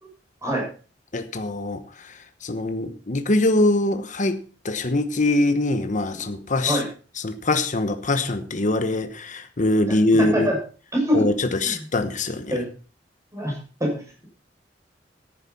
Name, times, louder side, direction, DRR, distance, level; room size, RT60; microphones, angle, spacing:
voice 1, 1.1-1.8 2.4-6.8 7.2-10.5 11.1-12.5, left 2 dB, 45° left, 1.1 m, -23 dB
voice 2, 10.2-10.6 10.9-11.2 11.6-11.9 12.5-12.6 13.3-14.0, equal, 15° right, 6.9 m, -24 dB
14.0 x 10.5 x 4.1 m
head